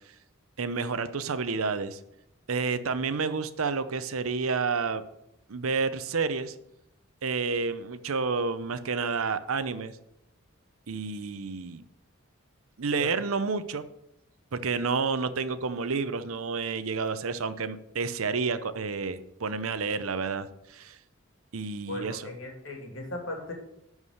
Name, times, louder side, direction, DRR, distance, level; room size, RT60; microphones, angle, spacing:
voice 1, 0.6-2.0 2.5-5.0 5.5-6.5 7.2-10.0 10.9-11.8 12.8-13.8 14.5-21.0 21.5-22.2, right 4 dB, 90° right, 13 dB, 0.7 m, -30 dB
voice 2, 21.9-23.5, left 2 dB, 65° left, 1 dB, 2.7 m, -37 dB
11.0 x 4.8 x 6.6 m, 0.82 s
head